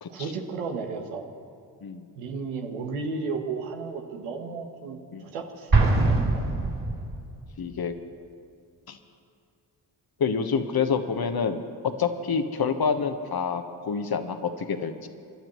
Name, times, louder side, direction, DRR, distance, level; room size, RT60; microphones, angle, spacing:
voice 1, 0.1-1.3 2.1-6.4, right 4 dB, 90° right, 3 dB, 1.3 m, -34 dB
Explosion, 5.7-7.4, right 3 dB, 40° right, 3.2 m, -22 dB
voice 2, 7.6-8.0 8.9-9.0 10.2-11.6 12.0-15.1, left 6 dB, 45° left, 8 dB, 1.3 m, -27 dB
25.0 x 12.0 x 3.1 m, 2.3 s
hypercardioid pair, 45°, 49 cm